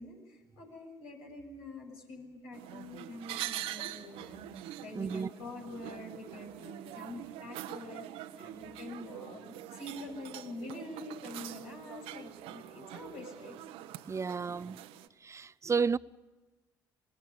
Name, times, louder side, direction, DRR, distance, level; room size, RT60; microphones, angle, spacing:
voice 1, 0.0-13.5, left 2 dB, 75° left, 7.1 m, -46 dB
sound 1, 2.5-15.1, right 13 dB, 70° right, 1.1 m, -44 dB
voice 2, 4.9-5.3 14.1-14.8 15.2-16.0, right 5 dB, 30° right, 0.6 m, -32 dB
25.5 x 20.5 x 6.7 m
hypercardioid pair, 55°, 10 cm